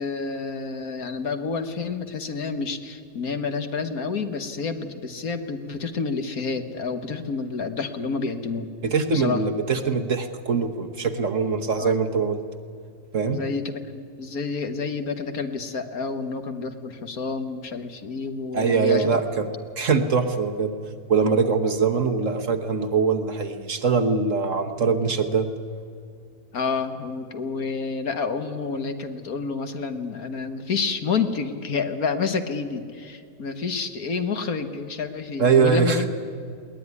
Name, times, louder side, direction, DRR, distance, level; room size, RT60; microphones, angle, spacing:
voice 1, 0.0-8.7 9.1-9.4 11.8-11.9 13.3-19.2 26.5-36.1, left 5 dB, 60° left, 8 dB, 1.8 m, -29 dB
voice 2, 8.8-12.4 13.1-13.4 18.5-19.5 19.8-20.8 21.1-25.5 35.4-36.1, right 5 dB, 50° right, 6 dB, 1.4 m, -22 dB
21.5 x 18.5 x 9.6 m, 2.4 s
omnidirectional pair, 1.8 m